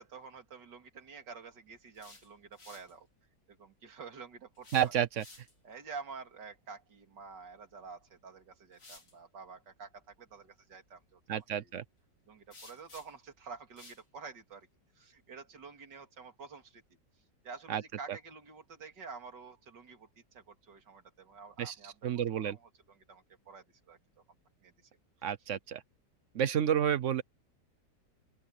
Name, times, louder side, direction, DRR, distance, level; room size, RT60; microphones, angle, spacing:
voice 1, 0.0-3.1 3.5-4.9 5.6-11.7 12.3-14.7 14.9-16.8 17.4-24.0 24.6-24.7 25.2-25.3, right 5 dB, 75° right, 3.1 m, -49 dB
sound 1, 1.8-2.9 4.5-5.7 7.8-7.9 8.7-9.1 12.5-13.3 13.8-14.0, left 3 dB, 80° left, 5.7 m, -55 dB
voice 2, 4.7-5.2 11.3-11.8 17.7-17.8 21.6-21.7 22.0-22.6 25.2-25.8 26.3-27.2, right 9 dB, 55° right, 0.9 m, -30 dB
open air
omnidirectional pair, 1.9 m